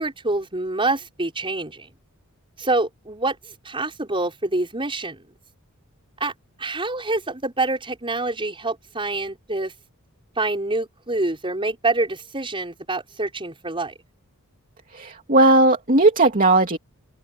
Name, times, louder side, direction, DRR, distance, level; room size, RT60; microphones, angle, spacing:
voice 1, 0.0-1.9 2.6-5.3 6.2-6.3 6.6-9.7 10.4-13.9, right 2 dB, 25° right, 5.5 m, -26 dB
voice 2, 14.9-16.8, right 2 dB, 40° right, 2.7 m, -17 dB
head